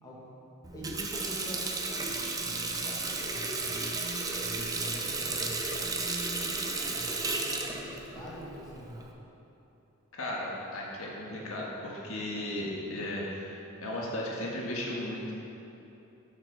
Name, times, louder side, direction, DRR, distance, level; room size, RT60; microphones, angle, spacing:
Water tap faucet, 0.6-9.1, right 3 dB, 15° right, 0.6 m, -33 dB
voice 1, 0.7-3.9 4.3-6.0 6.4-9.1, equal, 20° left, -7 dB, 1.8 m, -45 dB
voice 2, 10.2-15.3, left 1 dB, 85° left, -4 dB, 1.5 m, -35 dB
8.1 x 6.0 x 5.9 m, 2.9 s
head